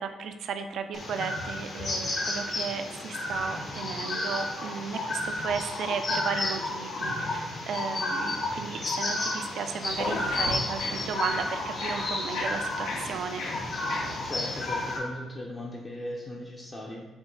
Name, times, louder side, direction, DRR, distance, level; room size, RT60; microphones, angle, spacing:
voice 1, 0.0-13.4, right 6 dB, 70° right, 8 dB, 0.4 m, -35 dB
sound 1, 0.9-15.0, left 2 dB, 50° left, 0.9 m, -32 dB
sound 2, 9.8-14.9, left 2 dB, 90° left, 0.8 m, -37 dB
voice 2, 14.2-17.1, left 1 dB, 30° left, -4 dB, 0.6 m, -38 dB
6.0 x 2.1 x 3.8 m, 1.3 s
cardioid pair, 90°, 0 cm